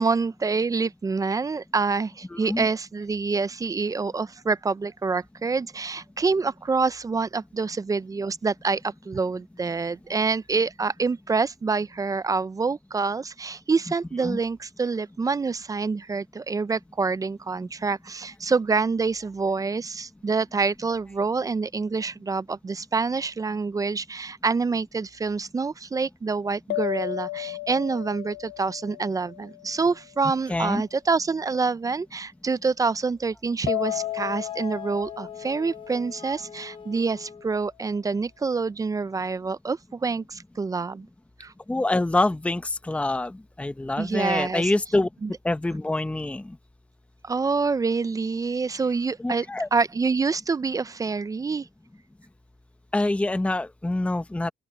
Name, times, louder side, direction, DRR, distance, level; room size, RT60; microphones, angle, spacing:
voice 1, 0.0-41.1 41.4-41.5 44.0-44.7 45.2-45.3 47.2-49.5 49.7-51.7, right 4 dB, 20° right, 0.5 m, -26 dB
voice 2, 2.3-2.7 14.2-14.4 30.5-30.8 41.7-45.1 45.4-46.6 49.2-49.7 52.9-54.5, left 2 dB, 5° left, 1.0 m, -26 dB
sound 1, 26.7-30.2 33.7-36.7, left 17 dB, 70° left, 1.1 m, -34 dB
Wind instrument woodwind instrument, 33.8-37.5, left 5 dB, 30° left, 4.0 m, -44 dB
open air
cardioid pair, 110°, 17 cm